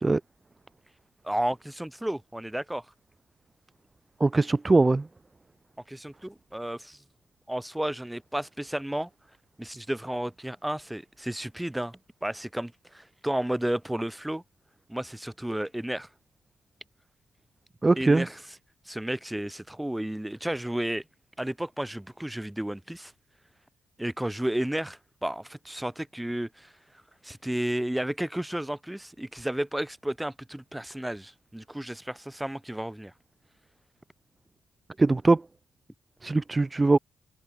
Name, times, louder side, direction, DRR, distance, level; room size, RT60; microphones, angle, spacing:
voice 1, 1.2-2.8 5.9-7.0 7.5-9.1 9.6-14.4 14.9-16.1 18.0-18.4 18.9-21.0 21.4-23.1 24.0-26.7 27.2-33.1, right 1 dB, 5° right, 6.9 m, -32 dB
voice 2, 4.2-5.1 17.8-18.3 35.0-35.4 36.2-37.0, right 3 dB, 25° right, 1.7 m, -21 dB
hypercardioid pair, 40°, 0 cm